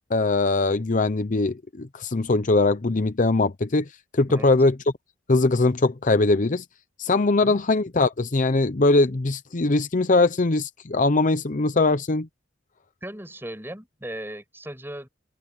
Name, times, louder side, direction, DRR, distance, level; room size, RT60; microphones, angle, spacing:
voice 1, 0.1-3.9 4.1-4.7 5.3-6.6 7.0-12.3, left 3 dB, 40° left, 0.7 m, -21 dB
voice 2, 13.0-15.1, right 1 dB, 10° right, 6.9 m, -37 dB
open air
head